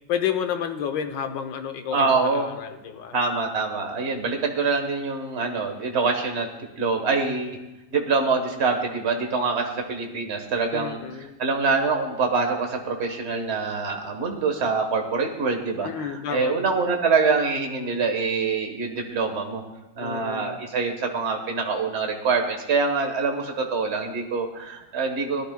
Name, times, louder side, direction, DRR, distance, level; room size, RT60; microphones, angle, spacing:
voice 1, 0.1-3.2 10.7-11.4 15.8-16.5 20.0-20.6, left 8 dB, 65° left, 7 dB, 1.4 m, -30 dB
voice 2, 1.9-2.5 3.1-6.5 6.8-7.6 7.9-11.0 11.4-19.6 20.0-25.4, right 4 dB, 35° right, 2 dB, 1.3 m, -25 dB
21.5 x 11.0 x 2.2 m, 1.0 s
omnidirectional pair, 2.3 m